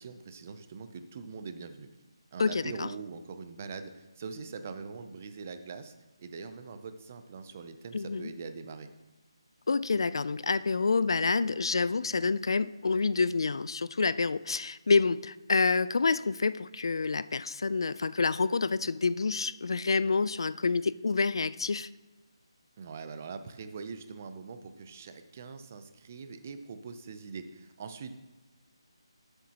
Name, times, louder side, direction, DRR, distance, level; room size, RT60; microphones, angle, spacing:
voice 1, 0.0-1.9 2.3-5.9 6.2-8.9 22.8-28.1, right 5 dB, 25° right, 10 dB, 0.5 m, -43 dB
voice 2, 2.4-2.9 7.9-8.3 9.7-21.9, left 4 dB, 60° left, 17 dB, 0.3 m, -28 dB
12.5 x 7.9 x 2.9 m, 1.1 s
hypercardioid pair, 175°, 3 cm